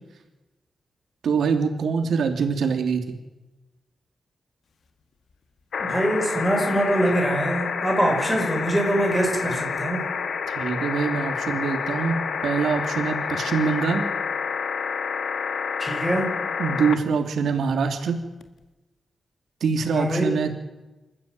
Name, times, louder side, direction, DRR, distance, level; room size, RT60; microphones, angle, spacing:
voice 1, 1.2-3.2 10.5-14.0 16.6-18.2 19.6-20.5, right 5 dB, 85° right, 5 dB, 3.1 m, -24 dB
sound 1, 5.7-17.0 18.4-18.5, left 6 dB, 65° left, 1.8 m, -28 dB
voice 2, 5.8-10.1 15.8-16.3 19.9-20.3, right 1 dB, ahead, 2 dB, 5.1 m, -23 dB
27.0 x 14.5 x 9.1 m, 1.1 s
wide cardioid pair, 180°, 0 cm